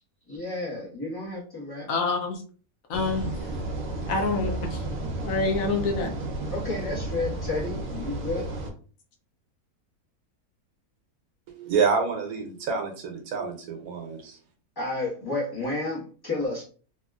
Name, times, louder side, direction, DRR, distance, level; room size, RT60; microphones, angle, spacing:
voice 1, 0.3-1.9 6.5-8.5 14.7-16.6, left 2 dB, 15° left, -6 dB, 1.2 m, -31 dB
voice 2, 1.9-2.4 2.9-3.5 4.1-4.8 5.2-6.1, left 3 dB, 70° left, 2 dB, 1.0 m, -27 dB
sound 1, 2.9-8.7, right 2 dB, 60° right, 1.0 m, -32 dB
voice 3, 11.6-14.4, right 5 dB, 80° right, 4 dB, 1.1 m, -27 dB
2.9 x 2.8 x 2.3 m, 0.40 s
omnidirectional pair, 1.6 m